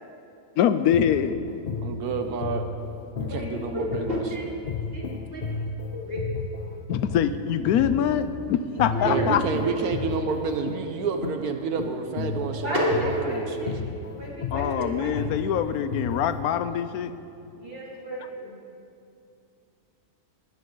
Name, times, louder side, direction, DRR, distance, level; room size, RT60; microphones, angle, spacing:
voice 1, 0.6-1.4 3.2-3.3 6.9-9.4 14.5-17.1, left 9 dB, 85° left, 12 dB, 1.1 m, -24 dB
sound 1, 0.7-8.4 8.8-16.4, left 4 dB, 50° left, 0.7 m, -33 dB
voice 2, 1.8-2.6 3.2-4.2 9.0-13.7, right 5 dB, 85° right, 6 dB, 1.4 m, -29 dB
voice 3, 4.1-4.4 4.9-5.0 5.3-5.4 6.0-6.2 8.7-9.3 12.6-13.7 14.1-15.1 17.5-18.5, equal, 40° right, -5 dB, 3.2 m, -30 dB
20.0 x 12.0 x 3.9 m, 2.5 s
omnidirectional pair, 1.5 m